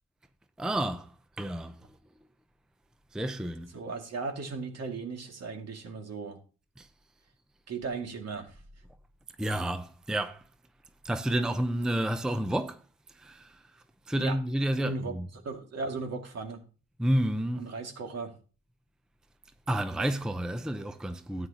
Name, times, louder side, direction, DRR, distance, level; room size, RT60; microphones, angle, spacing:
voice 1, 0.6-1.1 1.4-1.8 3.1-3.7 6.8-6.9 9.4-10.4 11.0-12.8 13.2-13.6 14.1-15.3 17.0-17.7 19.7-21.5, right 1 dB, ahead, 0.6 m, -30 dB
voice 2, 3.7-6.4 7.7-8.5 14.2-14.4 14.8-16.6 17.6-18.3 21.4-21.5, right 4 dB, 55° right, 2.3 m, -37 dB
13.0 x 9.3 x 2.9 m
cardioid pair, 90°, 30 cm